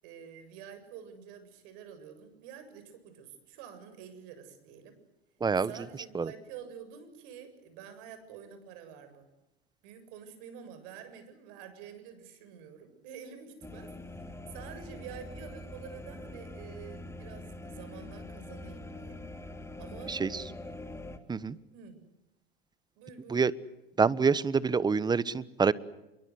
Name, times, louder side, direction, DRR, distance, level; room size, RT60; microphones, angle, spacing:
voice 1, 0.0-5.0 5.6-9.3 9.8-19.2 19.8-20.1 21.7-22.0 23.0-23.4, right 8 dB, 55° right, 10 dB, 7.5 m, -48 dB
voice 2, 5.4-5.7 6.1-6.3 20.1-20.4 21.3-21.6 23.3-23.5 24.0-25.7, right 5 dB, 15° right, 18 dB, 1.1 m, -26 dB
sound 1, 13.6-21.2, left 1 dB, 10° left, 2.7 m, -44 dB
27.5 x 23.5 x 7.9 m, 0.94 s
hypercardioid pair, 100°, 31 cm